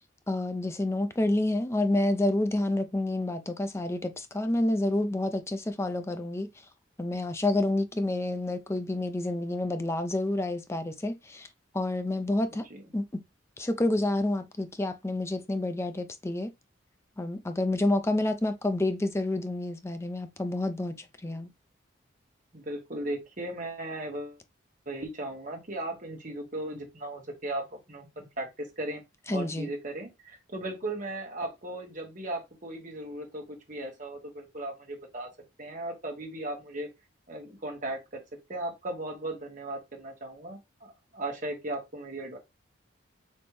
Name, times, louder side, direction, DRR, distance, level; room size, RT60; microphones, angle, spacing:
voice 1, 0.3-6.5 7.0-11.5 11.7-12.7 12.9-13.2 13.6-16.5 17.2-21.5 29.3-29.7, left 1 dB, 15° left, 0.4 m, -29 dB
voice 2, 12.5-12.8 22.5-24.4 24.9-29.0 29.3-35.3 35.6-36.9 37.3-38.2 38.5-42.4, right 1 dB, 40° right, 1.3 m, -37 dB
4.3 x 3.2 x 3.1 m
head